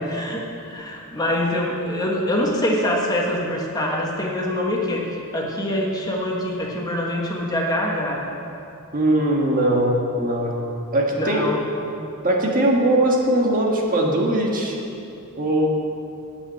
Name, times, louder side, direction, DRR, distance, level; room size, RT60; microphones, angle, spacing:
voice 1, 0.0-8.2 11.2-11.7, left 1 dB, 15° left, -2 dB, 1.4 m, -24 dB
voice 2, 8.9-10.6 10.9-11.5 12.2-14.7 15.4-15.7, right 1 dB, 40° right, -1 dB, 1.6 m, -20 dB
9.7 x 8.2 x 8.6 m, 2.7 s
head